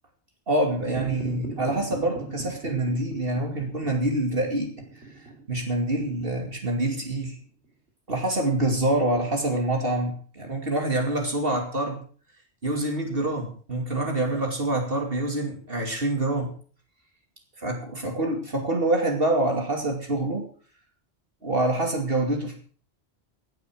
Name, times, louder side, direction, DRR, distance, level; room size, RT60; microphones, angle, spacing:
voice 1, 0.5-4.7 5.5-7.4 8.1-12.0 12.6-16.5 17.6-20.5 21.4-22.6, right 1 dB, 55° right, 2 dB, 2.8 m, -26 dB
sound 1, 0.9-7.4, right 3 dB, 75° right, 3.2 m, -39 dB
15.5 x 8.4 x 6.3 m, 0.42 s
omnidirectional pair, 1.1 m